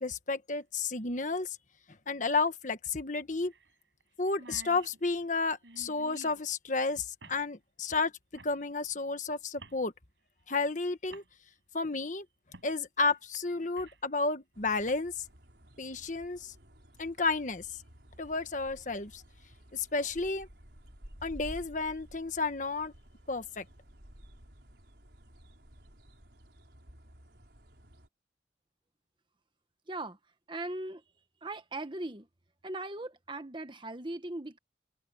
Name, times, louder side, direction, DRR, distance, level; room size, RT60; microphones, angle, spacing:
voice 1, 0.0-1.6 2.1-3.5 4.2-8.1 8.4-9.9 10.5-11.2 11.7-12.2 12.6-15.2 15.8-16.5 17.0-17.7 18.2-19.2 19.7-20.5 21.2-22.9 23.3-23.6, left 3 dB, 45° left, 1.4 m, -32 dB
sound 1, 0.6-0.7 2.4-2.5 2.9-3.0 3.5-3.7 4.0-4.1 4.3-6.5 7.2-7.4 8.3-8.6 9.6-9.8 10.6-10.7 11.1-11.3 12.5-12.7 13.1-14.1 14.7-14.9, right 3 dB, 90° right, 5.9 m, -51 dB
sound 2, 14.5-28.1, equal, 65° right, 5.1 m, -53 dB
voice 2, 29.9-30.2 30.5-31.0 31.4-32.3 32.6-34.6, right 2 dB, 25° right, 1.3 m, -39 dB
head